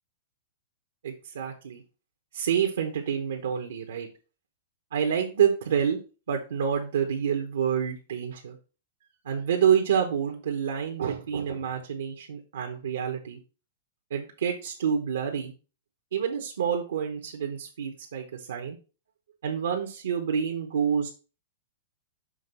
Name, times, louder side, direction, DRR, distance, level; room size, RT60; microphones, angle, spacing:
voice 1, 1.0-1.8 2.3-4.1 4.9-6.0 6.3-8.6 9.2-13.4 14.1-15.5 16.1-18.8 19.4-21.1, right 8 dB, 85° right, 2 dB, 1.1 m, -28 dB
6.4 x 3.0 x 5.4 m, 0.34 s
hypercardioid pair, 145°, 0 cm